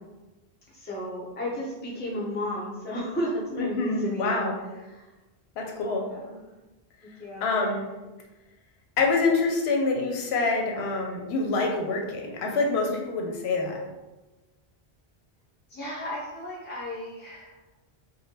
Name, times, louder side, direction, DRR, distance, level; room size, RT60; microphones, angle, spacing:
voice 1, 0.7-4.5 4.9-5.1 5.9-6.3 7.0-7.5 15.7-17.5, left 1 dB, 15° left, -4 dB, 0.5 m, -33 dB
voice 2, 3.6-4.6 5.6-6.0 7.4-7.8 9.0-13.8, left 3 dB, 80° left, 1 dB, 0.8 m, -26 dB
3.0 x 2.2 x 2.8 m, 1.1 s
omnidirectional pair, 1.1 m